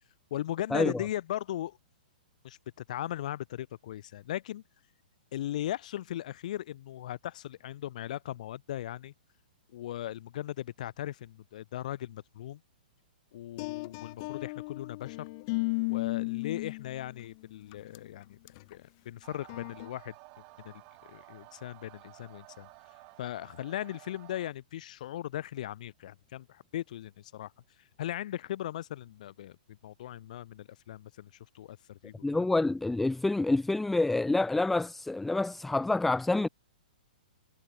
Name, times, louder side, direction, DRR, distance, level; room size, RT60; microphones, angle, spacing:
voice 1, 0.3-1.8 2.4-2.6 2.9-4.6 5.3-9.1 9.7-12.6 13.3-15.3 15.9-20.1 20.6-20.7 21.1-22.7 23.2-27.5 27.8-29.6 29.8-31.3 31.5-32.4, left 12 dB, 55° left, 4.3 m, -38 dB
sound 1, 13.6-17.2 17.7-18.0 18.5-18.7 19.5-19.9, left 28 dB, 35° left, 1.6 m, -34 dB
sound 2, 19.2-24.5, right 35 dB, 30° right, 6.0 m, -54 dB
voice 2, 32.2-36.5, left 2 dB, 5° left, 0.4 m, -27 dB
hypercardioid pair, 155°, 5 cm